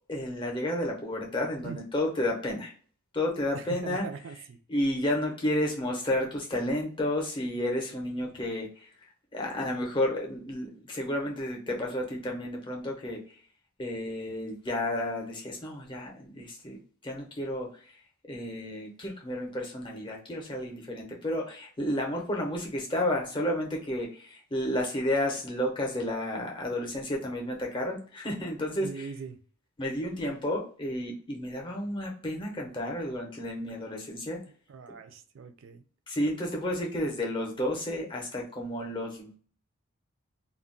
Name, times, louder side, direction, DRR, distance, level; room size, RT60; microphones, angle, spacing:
voice 1, 0.1-2.7 3.1-4.1 4.7-8.9 9.3-13.4 13.8-29.1 29.8-34.4 36.1-39.4, left 1 dB, 20° left, 0.6 m, -31 dB
voice 2, 3.5-4.6 28.8-29.4 34.7-35.8, right 5 dB, 60° right, 0.4 m, -41 dB
2.3 x 2.1 x 3.7 m
head